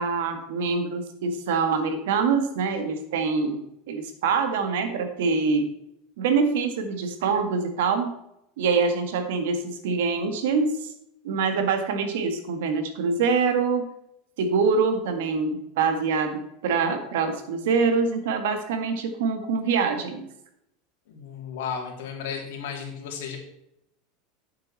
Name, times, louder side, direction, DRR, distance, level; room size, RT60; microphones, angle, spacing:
voice 1, 0.0-5.7 6.2-8.1 8.6-10.9 11.2-13.9 14.4-20.3, right 5 dB, 80° right, 7 dB, 1.8 m, -25 dB
voice 2, 21.1-23.4, left 7 dB, 80° left, 1 dB, 2.9 m, -34 dB
9.2 x 7.7 x 4.2 m, 0.80 s
supercardioid pair, 145°, 0 cm